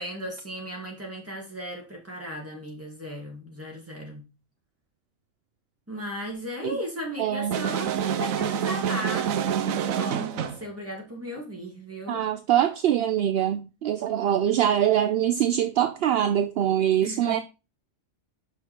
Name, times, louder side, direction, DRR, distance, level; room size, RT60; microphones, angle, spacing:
voice 1, 0.0-4.2 5.9-12.2 17.0-17.4, equal, 10° right, 2.4 m, -36 dB
voice 2, 7.2-7.6 12.1-17.4, right 10 dB, 65° right, 0.6 m, -23 dB
sound 1, 7.5-10.7, right 8 dB, 85° right, 1.1 m, -27 dB
5.9 x 5.8 x 4.5 m
omnidirectional pair, 1.4 m